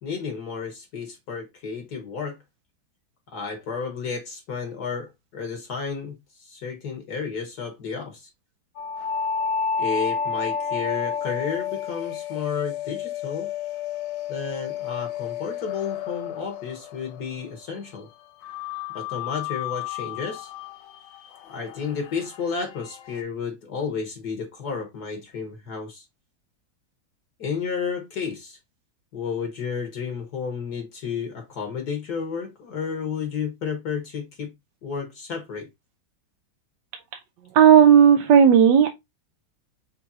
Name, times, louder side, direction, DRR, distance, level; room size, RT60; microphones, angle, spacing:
voice 1, 0.0-2.4 3.3-8.3 9.8-13.5 14.3-18.1 18.9-20.5 21.5-26.0 27.4-28.6 29.1-34.5 34.8-35.7, left 6 dB, 55° left, 1.5 m, -32 dB
sound 1, 8.8-17.6 18.4-23.2, left 7 dB, 85° left, 1.5 m, -31 dB
voice 2, 37.5-38.9, right 8 dB, 70° right, 1.2 m, -13 dB
6.0 x 3.2 x 2.7 m
omnidirectional pair, 2.2 m